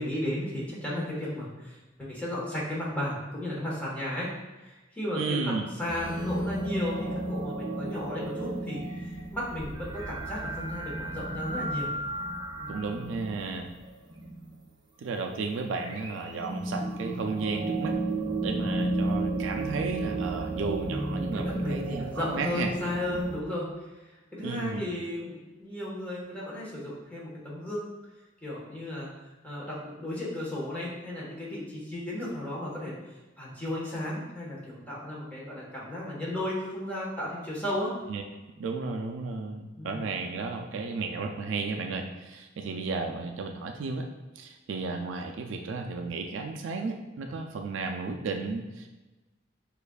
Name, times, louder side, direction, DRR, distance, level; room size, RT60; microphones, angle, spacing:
voice 1, 0.0-4.3 4.6-11.9 12.6-12.7 20.9-23.7 24.3-27.8 28.4-29.1 29.4-32.9 33.4-37.9 39.8-40.1, left 1 dB, 10° left, -7 dB, 1.3 m, -34 dB
voice 2, 5.1-5.7 12.7-13.7 15.0-17.9 18.4-22.7 24.4-24.9 38.1-38.2 38.6-44.1 44.4-48.9, right 4 dB, 75° right, 4 dB, 0.4 m, -33 dB
sound 1, 5.9-14.6 15.6-23.4, right 2 dB, 25° right, 0.5 m, -33 dB
6.4 x 2.5 x 2.3 m, 1.1 s
head